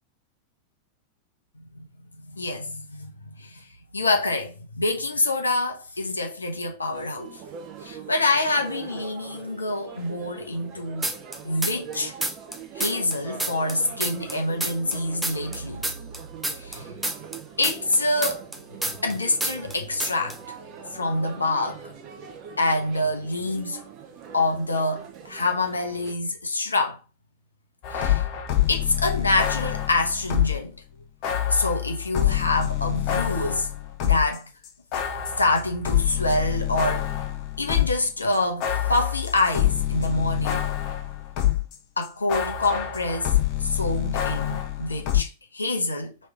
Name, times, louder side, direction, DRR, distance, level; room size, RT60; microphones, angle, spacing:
voice 1, 2.3-3.7 3.9-7.4 7.8-11.1 11.4-12.1 12.8-15.9 16.6-16.9 17.6-18.5 19.0-20.4 20.9-21.8 22.6-23.8 24.3-27.0 27.9-28.2 28.7-30.8 31.5-33.7 34.0-34.5 35.4-37.1 37.6-40.7 42.0-46.2, left 2 dB, 80° left, 0.8 m, -26 dB
sound 1, 6.9-26.1, right 7 dB, 40° right, 0.8 m, -42 dB
sound 2, 11.0-12.0 12.2-15.0 15.2-19.2 19.4-19.8 20.0-20.4, right 1 dB, 5° right, 0.6 m, -29 dB
sound 3, 27.8-30.7 31.2-34.4 34.6-41.8 42.0-45.2, left 12 dB, 45° left, 0.8 m, -26 dB
3.2 x 3.2 x 4.6 m
figure-of-eight pair, 90°, 0 cm